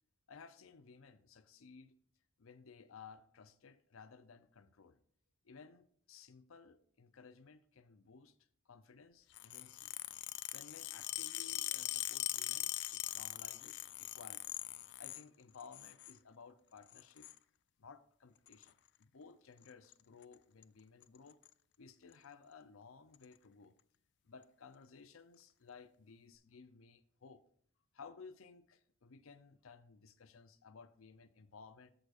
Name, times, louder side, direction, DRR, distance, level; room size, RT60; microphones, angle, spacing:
voice 1, 0.3-2.0 2.4-5.0 5.4-8.3 8.7-9.9 10.5-17.3 17.8-21.4 21.8-23.7 24.2-27.4 27.9-31.9, left 5 dB, 90° left, 0.6 m, -57 dB
sound 1, 9.3-15.2 15.6-16.2 16.9-17.4 18.5-18.7 19.7-19.9 20.2-20.3 20.6-20.7 21.0-21.5 22.1-22.2 23.1-23.2, left 17 dB, 55° left, 0.3 m, -41 dB
14.0 x 5.1 x 2.5 m
head